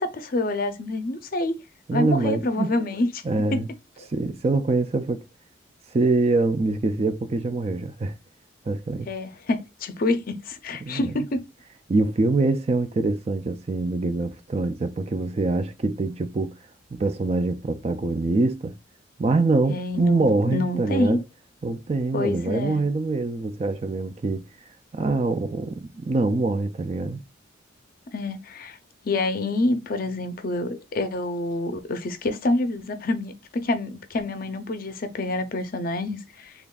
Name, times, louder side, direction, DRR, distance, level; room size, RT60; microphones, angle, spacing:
voice 1, 0.0-1.5 1.9-3.2 3.5-3.6 4.0-4.1 9.1-11.4 19.7-21.2 22.1-22.8 28.1-28.8 29.0-36.5, left 2 dB, 45° left, 0.5 m, -27 dB
voice 2, 1.9-2.8 3.2-3.7 4.1-5.2 5.9-8.1 8.7-9.1 10.8-11.1 11.9-16.5 16.9-18.8 19.2-21.2 21.6-24.5 24.9-27.2, right 3 dB, 30° right, 0.3 m, -24 dB
3.7 x 3.4 x 2.3 m
head